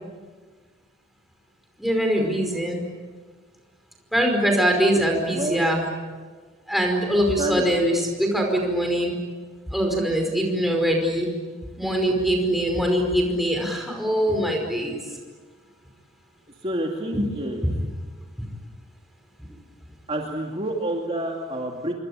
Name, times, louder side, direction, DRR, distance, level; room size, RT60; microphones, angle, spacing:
voice 1, 1.8-2.8 4.1-5.8 6.7-9.1 9.7-11.3 11.8-15.0 17.1-17.2 17.6-17.7, equal, ahead, 1 dB, 5.1 m, -22 dB
voice 2, 5.3-5.7 7.4-7.7 16.6-17.7 20.1-21.9, right 1 dB, 30° right, 0 dB, 2.4 m, -28 dB
27.5 x 24.0 x 8.8 m, 1.5 s
head